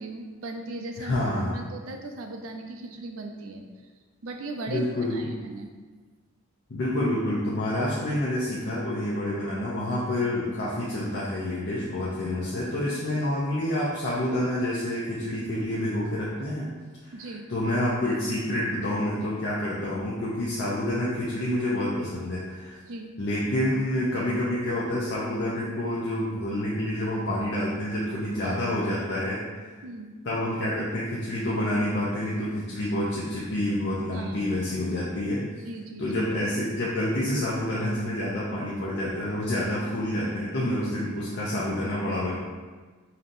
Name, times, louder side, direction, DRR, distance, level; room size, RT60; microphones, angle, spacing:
voice 1, 0.0-1.2 1.5-3.6 4.2-4.8 5.1-5.7 17.1-17.4 22.9-23.1 29.8-30.1 34.1-34.4 35.6-36.0, right 2 dB, 80° right, 3 dB, 0.5 m, -38 dB
voice 2, 1.0-1.6 4.7-5.2 6.7-16.7 17.0-22.7 23.2-29.7 30.2-35.4 36.0-42.4, left 1 dB, 55° left, -7 dB, 0.6 m, -28 dB
5.1 x 2.8 x 2.6 m, 1.4 s
head